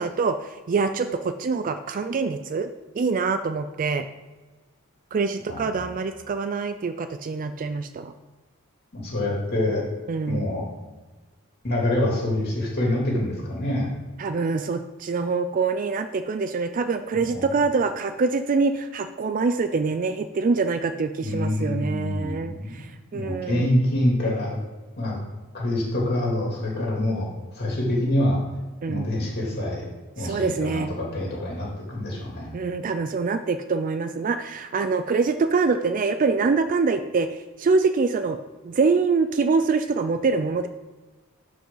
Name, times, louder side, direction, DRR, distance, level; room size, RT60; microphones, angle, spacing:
voice 1, 0.0-2.7 3.0-4.1 5.1-8.1 10.1-10.4 14.2-23.7 28.8-29.1 30.2-30.9 32.5-38.4 38.6-40.7, right 4 dB, 40° right, 9 dB, 0.3 m, -25 dB
voice 2, 5.5-5.8 8.9-9.8 10.3-10.7 11.6-13.9 17.1-17.5 21.2-22.8 23.1-24.6 25.0-25.2 25.5-27.3 27.5-28.4 28.9-29.9 30.2-32.5, left 1 dB, 45° left, -4 dB, 2.9 m, -26 dB
12.0 x 5.1 x 3.9 m, 1.3 s
head